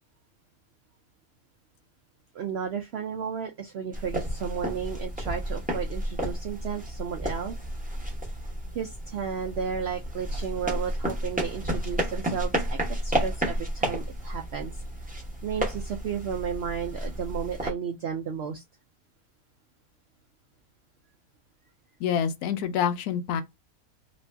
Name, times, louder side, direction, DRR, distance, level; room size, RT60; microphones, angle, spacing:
voice 1, 2.3-7.6 8.7-14.7 15.4-18.6, right 7 dB, 75° right, 0.5 m, -33 dB
sound 1, 3.9-17.7, right 1 dB, 10° right, 0.6 m, -32 dB
voice 2, 22.0-23.4, left 8 dB, 80° left, 1.1 m, -27 dB
3.0 x 2.6 x 3.3 m
omnidirectional pair, 1.6 m